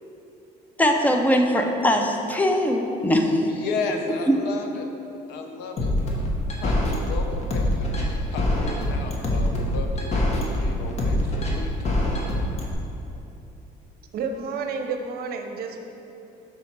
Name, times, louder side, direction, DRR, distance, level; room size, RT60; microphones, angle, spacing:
voice 1, 0.8-3.4, left 1 dB, 10° left, 3 dB, 0.6 m, -21 dB
voice 2, 3.5-4.9 5.3-5.9 6.5-12.0, left 4 dB, 80° left, 4 dB, 0.7 m, -34 dB
sound 1, 5.8-12.7, left 1 dB, 40° left, 1.2 m, -24 dB
voice 3, 14.1-15.8, right 5 dB, 65° right, 5 dB, 0.7 m, -30 dB
5.6 x 4.2 x 5.9 m, 2.9 s
cardioid pair, 110°, 17 cm